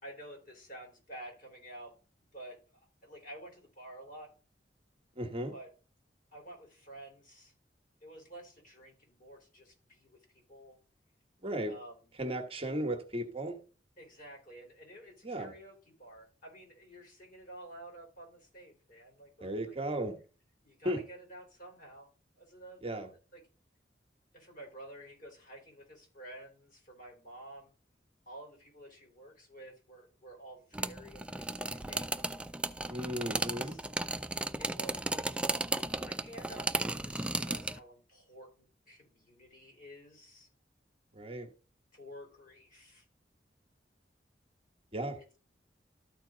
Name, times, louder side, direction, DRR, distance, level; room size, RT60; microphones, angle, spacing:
voice 1, 0.0-2.0 2.3-4.3 5.5-5.7 6.3-7.5 8.0-10.8 11.7-12.1 14.0-19.8 20.6-22.1 22.4-23.4 24.3-27.7 28.3-32.2 33.3-33.9 34.6-35.3 36.1-40.5 41.9-43.0 45.2-45.4, right 1 dB, 50° left, 4.0 m, -51 dB
voice 2, 5.1-5.5 11.4-11.8 12.2-13.6 15.2-15.5 19.4-20.2 20.8-21.0 22.8-23.1 32.9-33.8 41.1-41.5 44.9-45.2, right 1 dB, 35° right, 1.2 m, -35 dB
sound 1, 30.7-37.8, right 2 dB, 5° right, 0.3 m, -35 dB
13.0 x 4.5 x 3.8 m
head